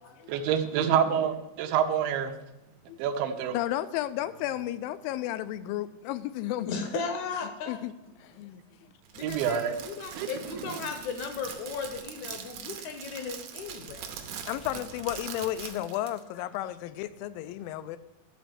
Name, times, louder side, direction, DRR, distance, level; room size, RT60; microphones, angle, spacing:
voice 1, 0.3-2.4 3.0-3.6 9.2-9.8 10.1-10.7, right 8 dB, 85° right, 8 dB, 2.6 m, -27 dB
voice 2, 3.5-6.9 7.7-7.9 8.2-8.9 14.5-18.0, left 13 dB, 90° left, 14 dB, 2.3 m, -33 dB
voice 3, 6.7-7.8 9.1-14.1, left 5 dB, 70° left, 6 dB, 1.9 m, -36 dB
Crackle, 9.1-16.2, right 8 dB, 70° right, 2.2 m, -42 dB
12.5 x 4.3 x 7.6 m, 0.96 s
omnidirectional pair, 4.0 m